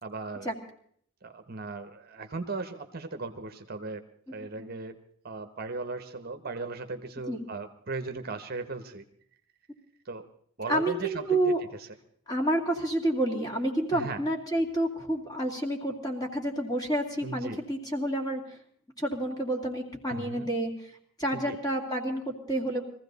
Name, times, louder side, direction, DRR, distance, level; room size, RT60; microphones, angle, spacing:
voice 1, 0.0-0.5 1.2-4.0 4.3-4.9 5.2-9.0 10.0-10.3 10.6-11.4 11.7-11.9 13.9-14.2 17.2-17.6 20.1-20.5 21.3-21.6, right 3 dB, 45° right, 8 dB, 0.9 m, -37 dB
voice 2, 10.7-11.6 12.3-18.6 19.0-20.9 21.2-22.8, right 1 dB, 15° left, 1 dB, 2.5 m, -29 dB
22.0 x 15.5 x 4.1 m, 0.63 s
head